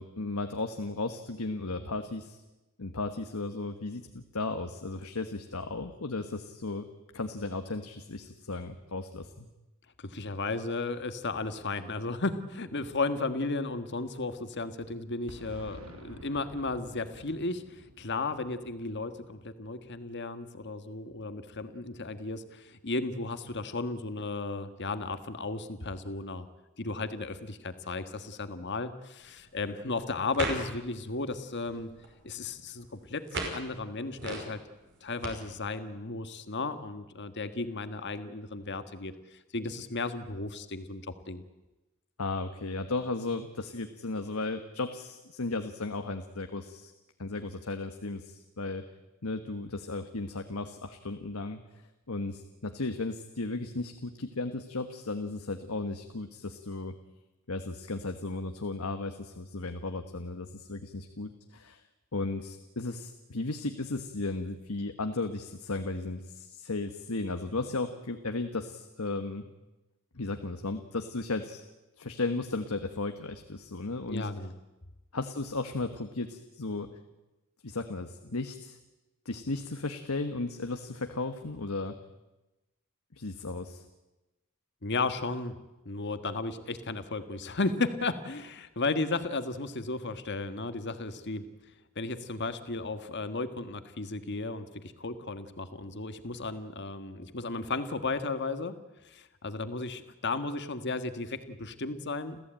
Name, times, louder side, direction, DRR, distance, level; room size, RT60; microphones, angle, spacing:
voice 1, 0.0-2.4 2.8-6.8 7.1-9.5 42.2-46.9 47.2-48.8 49.2-51.6 52.1-56.9 57.5-61.8 62.1-69.5 70.1-71.6 72.0-74.3 75.1-76.9 77.6-78.8 79.2-81.9 83.2-83.8, left 3 dB, 85° left, 7 dB, 1.4 m, -35 dB
voice 2, 10.0-26.5 26.8-31.9 32.2-33.2 33.5-34.6 35.0-41.4 74.1-74.5 84.8-85.6 85.8-91.4 91.9-98.8 99.0-102.4, left 3 dB, 55° left, 10 dB, 1.5 m, -34 dB
Boom, 15.3-20.0, right 1 dB, 75° right, 2.4 m, -50 dB
sound 1, 29.2-35.3, right 2 dB, 55° right, 5.5 m, -40 dB
30.0 x 14.5 x 9.0 m, 1.0 s
head